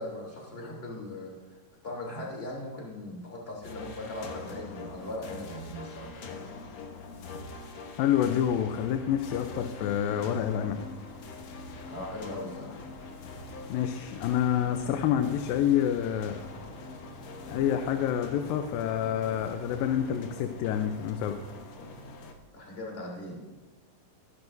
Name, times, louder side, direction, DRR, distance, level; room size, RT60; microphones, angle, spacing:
voice 1, 0.0-6.4 11.9-12.9 22.5-23.4, left 1 dB, 15° left, -2 dB, 2.9 m, -39 dB
sound 1, 3.6-22.3, left 3 dB, 60° left, 2.0 m, -43 dB
voice 2, 8.0-10.8 13.7-16.4 17.5-21.4, left 9 dB, 85° left, 7 dB, 2.4 m, -28 dB
19.0 x 10.5 x 2.6 m, 1.3 s
omnidirectional pair, 4.0 m